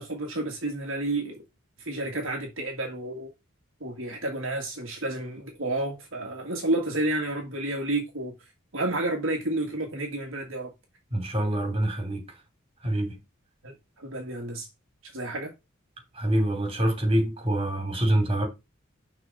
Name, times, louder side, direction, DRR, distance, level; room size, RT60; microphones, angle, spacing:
voice 1, 0.0-1.4 1.8-3.3 3.8-8.3 8.7-10.7 13.6-14.7 15.1-15.5, right 2 dB, 65° right, 1.8 m, -30 dB
voice 2, 11.1-12.2 12.8-13.2 16.1-18.5, right 1 dB, 25° right, 3.2 m, -25 dB
6.3 x 4.4 x 6.4 m
head